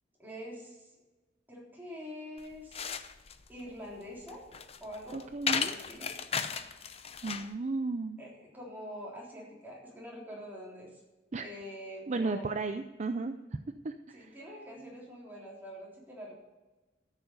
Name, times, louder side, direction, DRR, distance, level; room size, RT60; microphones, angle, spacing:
voice 1, 0.2-0.9 1.5-2.9 3.5-4.4 4.8-6.2 8.2-11.0 11.4-12.5 14.1-16.4, equal, 10° right, -4 dB, 3.6 m, -45 dB
sound 1, 2.4-7.5, left 6 dB, 35° left, 0.6 m, -36 dB
voice 2, 5.1-5.7 7.2-8.2 11.3-11.5 12.1-13.3 13.8-14.3, right 3 dB, 40° right, 8 dB, 0.5 m, -34 dB
13.0 x 7.1 x 6.7 m, 1.2 s
head